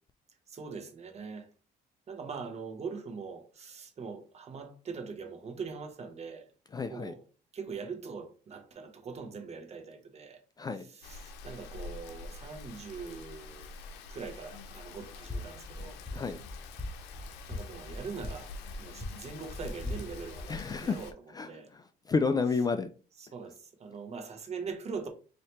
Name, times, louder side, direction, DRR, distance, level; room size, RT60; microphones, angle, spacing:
voice 1, 0.5-1.5 2.1-6.4 6.9-7.2 7.5-10.4 11.1-13.7 14.1-16.0 17.5-18.5 18.8-21.1 21.5-21.7 23.3-23.5 23.8-25.1, right 5 dB, 40° right, 0.9 m, -42 dB
voice 2, 6.7-7.1 10.6-10.8 16.1-16.4 20.5-21.0 21.3-22.9, left 4 dB, 25° left, 0.3 m, -31 dB
Rain, 11.0-21.1, left 4 dB, 90° left, 0.6 m, -46 dB
sound 1, 15.2-20.6, left 1 dB, 5° left, 0.9 m, -41 dB
4.3 x 2.8 x 3.2 m
cardioid pair, 110°, 17 cm